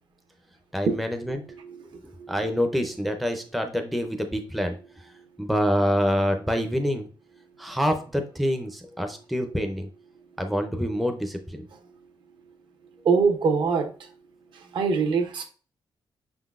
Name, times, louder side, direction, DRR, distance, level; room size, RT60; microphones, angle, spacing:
voice 1, 0.7-1.4 2.3-4.8 5.4-7.1 7.6-9.9 10.4-11.6, equal, ahead, 0.4 m, -26 dB
voice 2, 13.0-13.9 14.7-15.4, right 5 dB, 65° right, 0.9 m, -22 dB
5.7 x 3.9 x 2.4 m
wide cardioid pair, 180°, 9 cm